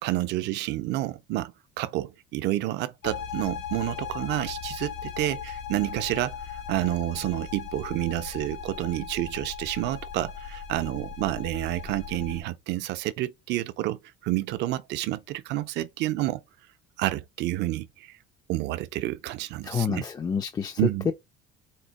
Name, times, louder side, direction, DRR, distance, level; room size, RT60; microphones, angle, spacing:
voice 1, 0.0-16.4 17.0-18.1 18.5-20.0 20.8-21.1, right 16 dB, 55° right, 0.5 m, -29 dB
sound 1, 3.0-12.4, left 7 dB, 80° left, 1.6 m, -38 dB
voice 2, 19.6-20.8 21.1-21.2, left 6 dB, 20° left, 0.3 m, -28 dB
4.4 x 2.8 x 3.9 m
cardioid pair, 160°, 21 cm